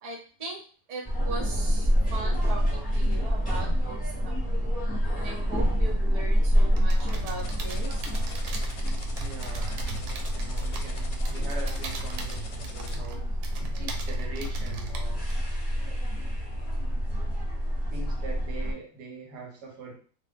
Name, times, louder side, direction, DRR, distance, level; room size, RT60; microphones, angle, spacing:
voice 1, 0.0-0.6 0.9-4.7 5.1-8.1, right 3 dB, 45° right, -4 dB, 0.5 m, -39 dB
sound 1, 1.0-18.7, equal, 5° left, 0.7 m, -27 dB
sound 2, 6.7-15.4, right 3 dB, 85° right, 1.3 m, -39 dB
sound 3, 7.4-12.9, left 4 dB, 75° left, 1.3 m, -45 dB
voice 2, 9.1-13.3 13.6-15.3 16.6-16.8 17.9-20.0, right 3 dB, 65° right, -1 dB, 1.4 m, -42 dB
3.2 x 2.1 x 3.5 m, 0.41 s
omnidirectional pair, 2.0 m